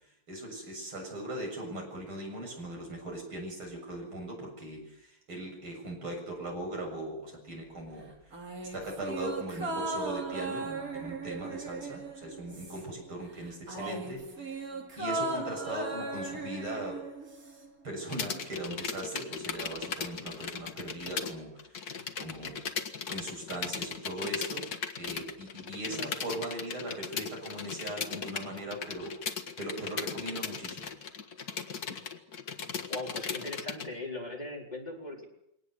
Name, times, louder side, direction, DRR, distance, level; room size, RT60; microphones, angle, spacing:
voice 1, 0.3-8.4 8.7-14.2 14.5-14.7 15.0-17.1 17.8-21.5 22.2-22.6 23.1-24.7 24.9-31.0, right 1 dB, 75° right, 1 dB, 8.1 m, -39 dB
sound 1, 8.3-13.1 13.4-17.7 18.0-18.1, right 2 dB, 40° right, 3.1 m, -37 dB
voice 2, 13.7-14.0 25.9-26.1 32.9-35.2, left 1 dB, 20° left, -1 dB, 4.7 m, -39 dB
sound 2, 18.1-21.3 21.6-33.9, left 6 dB, 50° left, 2.0 m, -37 dB
23.0 x 19.0 x 8.2 m, 0.80 s
omnidirectional pair, 2.3 m